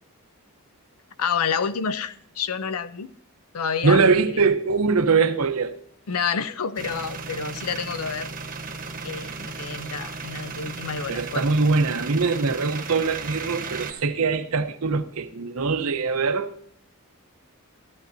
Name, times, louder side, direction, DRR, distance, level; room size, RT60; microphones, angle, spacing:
voice 1, 1.2-3.1 3.5-4.0 4.3-4.5 6.1-8.3 9.0-11.4, left 6 dB, 80° left, 14 dB, 0.6 m, -29 dB
voice 2, 3.8-5.8 6.2-6.3 11.1-16.6, right 4 dB, 70° right, 10 dB, 0.7 m, -22 dB
sound 1, 6.8-13.9, right 4 dB, 40° right, 1.0 m, -35 dB
14.0 x 13.5 x 2.6 m, 0.67 s
head